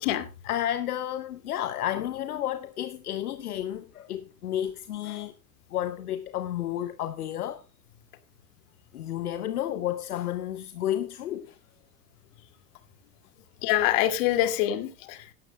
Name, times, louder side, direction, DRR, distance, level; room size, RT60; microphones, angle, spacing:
voice 1, 0.4-5.3 5.7-7.6 8.9-11.6, left 11 dB, 70° left, 1.1 m, -31 dB
voice 2, 13.6-15.3, left 13 dB, 55° left, 2.4 m, -25 dB
17.5 x 12.5 x 2.2 m
figure-of-eight pair, 85°, 46 cm